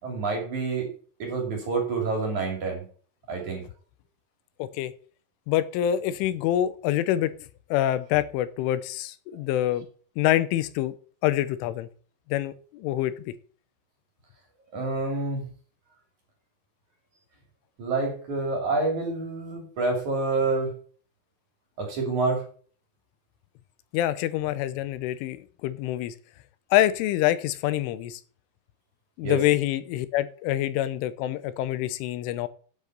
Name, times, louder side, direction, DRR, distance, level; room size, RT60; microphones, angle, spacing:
voice 1, 0.0-0.9 1.2-2.8 3.3-3.6 14.7-15.4 17.8-20.7 21.8-22.5 29.2-29.4, right 3 dB, 45° right, 1 dB, 3.7 m, -27 dB
voice 2, 4.6-4.9 5.5-7.3 7.7-9.9 10.2-10.9 11.2-11.9 12.3-13.3 23.9-26.1 26.7-28.2 29.2-32.5, left 13 dB, 85° left, 13 dB, 3.3 m, -26 dB
8.8 x 8.2 x 6.6 m, 0.43 s
omnidirectional pair, 5.6 m